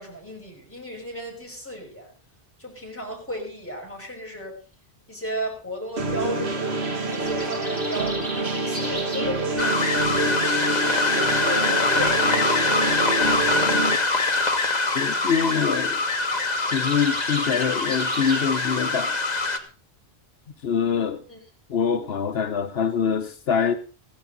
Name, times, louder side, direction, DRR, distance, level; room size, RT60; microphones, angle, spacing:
voice 1, 0.0-2.1 2.6-4.6 5.1-12.6 21.3-21.4, equal, 10° left, 5.9 m, -35 dB
sound 1, 6.0-14.0, right 2 dB, 90° right, 1.8 m, -27 dB
sound 2, 7.1-9.3 16.0-18.5, equal, 40° right, 5.9 m, -36 dB
sound 3, 9.6-19.6, left 3 dB, 40° left, 1.6 m, -23 dB
voice 2, 14.9-16.0 16.7-19.2 20.6-21.2 21.7-23.7, left 7 dB, 75° left, 1.1 m, -24 dB
16.0 x 15.5 x 4.0 m
omnidirectional pair, 1.1 m